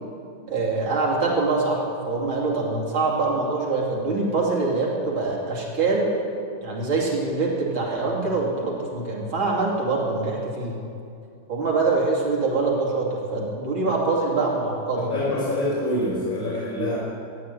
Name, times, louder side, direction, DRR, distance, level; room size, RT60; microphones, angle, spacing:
voice 1, 0.5-6.1 6.6-10.7 11.5-15.1, right 3 dB, 70° right, -4 dB, 3.6 m, -24 dB
voice 2, 15.0-17.0, left 1 dB, 25° left, -6 dB, 4.9 m, -25 dB
14.5 x 9.3 x 9.8 m, 2.5 s
omnidirectional pair, 2.3 m